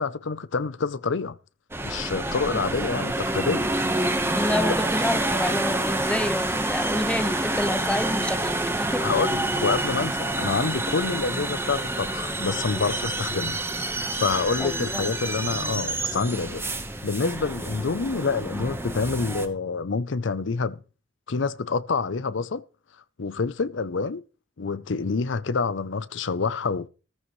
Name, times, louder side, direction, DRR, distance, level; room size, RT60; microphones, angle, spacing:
voice 1, 0.0-1.4 1.8-3.7 9.0-13.6 14.1-16.7 17.0-20.8 21.3-22.6 23.2-24.2 24.6-26.9, left 4 dB, 70° left, 0.6 m, -27 dB
sound 1, 1.7-19.5, right 1 dB, 15° right, 1.2 m, -28 dB
voice 2, 4.3-9.1 14.6-15.1, left 1 dB, 5° left, 0.5 m, -28 dB
14.0 x 14.0 x 3.2 m
head